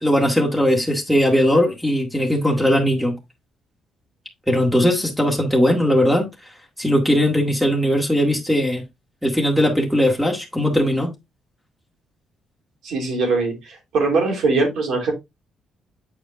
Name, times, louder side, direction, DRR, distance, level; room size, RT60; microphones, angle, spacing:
voice 1, 0.0-3.1 4.5-6.3 6.8-8.8 9.2-11.1, equal, 5° right, 1.9 m, -19 dB
voice 2, 12.8-15.1, right 3 dB, 75° right, 3.2 m, -21 dB
7.9 x 4.9 x 2.5 m
cardioid pair, 90°, 0 cm